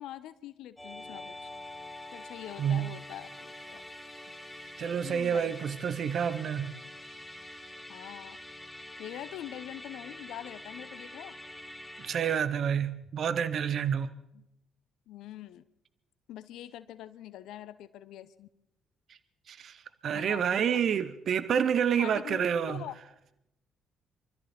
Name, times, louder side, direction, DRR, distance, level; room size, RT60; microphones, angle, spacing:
voice 1, 0.0-1.4 2.1-3.8 5.0-5.5 7.9-8.4 9.0-11.4 14.3-14.5 15.1-15.6 16.3-18.5 20.1-20.8 22.0-23.0, left 12 dB, 75° left, 0.7 m, -44 dB
Musical instrument, 0.8-12.4, left 1 dB, 10° left, 1.8 m, -46 dB
voice 2, 2.6-3.0 4.8-6.7 12.0-14.1 19.5-22.8, right 8 dB, 60° right, 0.7 m, -29 dB
24.5 x 13.5 x 4.3 m
hypercardioid pair, 55°, 0 cm